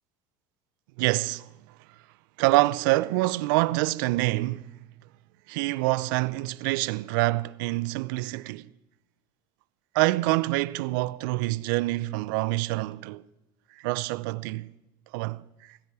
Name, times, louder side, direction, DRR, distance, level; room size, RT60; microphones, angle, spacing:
voice 1, 1.0-1.5 2.4-4.7 5.5-8.7 9.9-13.2 13.8-14.7 15.1-15.4, right 20 dB, 85° right, 0.5 m, -26 dB
16.0 x 15.0 x 4.8 m
cardioid pair, 135°, 11 cm